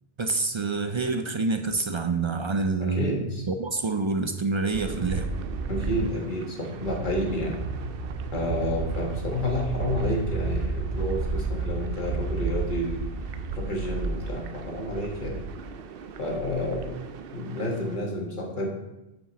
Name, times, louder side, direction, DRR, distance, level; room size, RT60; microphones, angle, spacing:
voice 1, 0.2-5.3, right 3 dB, 50° right, 8 dB, 0.3 m, -27 dB
voice 2, 2.8-3.4 5.7-7.6 8.3-15.4 16.2-17.0 17.3-18.7, left 1 dB, 50° left, 0 dB, 1.7 m, -30 dB
sound 1, 4.7-18.0, right 4 dB, 65° right, 0.8 m, -32 dB
8.9 x 5.0 x 4.0 m, 0.98 s
omnidirectional pair, 1.1 m